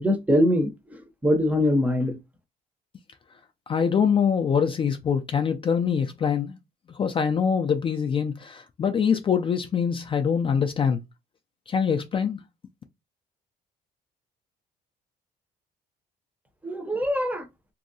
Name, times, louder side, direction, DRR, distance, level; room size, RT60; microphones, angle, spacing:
voice 1, 0.0-2.1 16.6-17.5, left 1 dB, 10° right, 0.6 m, -23 dB
voice 2, 3.7-6.6 6.9-11.0 11.7-12.4, left 7 dB, 30° left, 0.4 m, -24 dB
3.0 x 2.7 x 2.6 m
cardioid pair, 110°, 17 cm